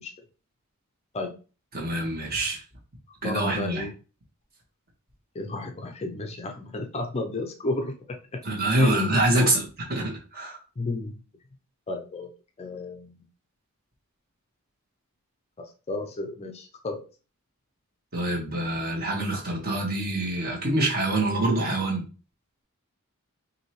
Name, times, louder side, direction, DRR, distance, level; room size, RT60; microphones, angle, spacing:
voice 1, 1.7-2.6 3.2-3.9 8.4-9.6 9.9-10.6 18.1-22.0, right 1 dB, 45° right, -2 dB, 1.6 m, -25 dB
voice 2, 3.2-3.9 5.3-8.4 8.8-9.6 10.8-11.2 11.9-12.3 12.6-13.2 15.6-17.0, left 2 dB, 30° left, 5 dB, 0.5 m, -33 dB
5.2 x 2.7 x 3.1 m, 0.36 s
head